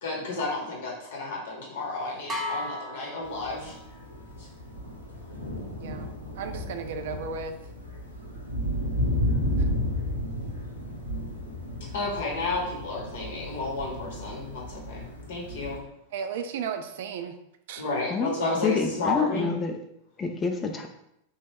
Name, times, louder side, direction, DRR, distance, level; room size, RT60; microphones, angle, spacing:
voice 1, 0.0-3.8 4.4-4.5 11.9-15.8 17.8-19.5, left 2 dB, 60° left, -2 dB, 0.8 m, -32 dB
sound 1, 2.3-4.1, left 1 dB, 15° right, 0.7 m, -35 dB
sound 2, 3.2-15.8, left 1 dB, 85° right, 0.7 m, -33 dB
voice 2, 6.4-7.6 16.1-17.3 17.7-17.8, right 6 dB, 55° right, 7 dB, 0.3 m, -34 dB
voice 3, 18.6-19.8 20.2-20.9, left 5 dB, 20° left, 4 dB, 0.4 m, -27 dB
2.9 x 2.2 x 3.3 m, 0.80 s
figure-of-eight pair, 90°, 0 cm